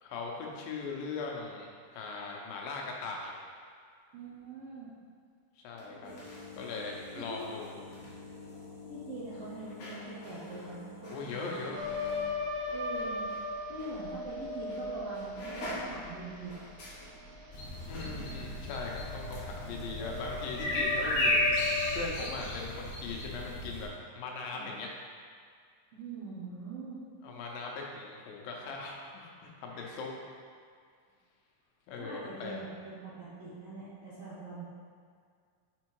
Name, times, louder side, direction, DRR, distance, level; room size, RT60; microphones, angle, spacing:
voice 1, 0.0-1.7 1.9-3.3 5.6-6.2 6.5-7.8 11.1-11.8 17.9-21.4 21.9-24.9 27.2-30.1 31.9-32.6, left 4 dB, 85° left, -1 dB, 2.5 m, -39 dB
voice 2, 4.1-5.0 7.2-7.4 8.9-11.5 12.7-13.3 13.7-16.6 24.5-24.8 25.9-27.0 29.7-30.1 32.0-34.6, right 3 dB, 60° right, -8 dB, 1.7 m, -43 dB
sound 1, 5.7-13.5 13.8-13.9 14.7-14.9 15.1-21.7 21.9-22.0, left 1 dB, 50° left, 2.2 m, -47 dB
sound 2, 11.7-22.1, left 3 dB, 85° right, 2.5 m, -38 dB
sound 3, 17.5-23.9, left 1 dB, 65° left, 2.7 m, -33 dB
6.3 x 4.4 x 4.6 m, 2.1 s
omnidirectional pair, 4.0 m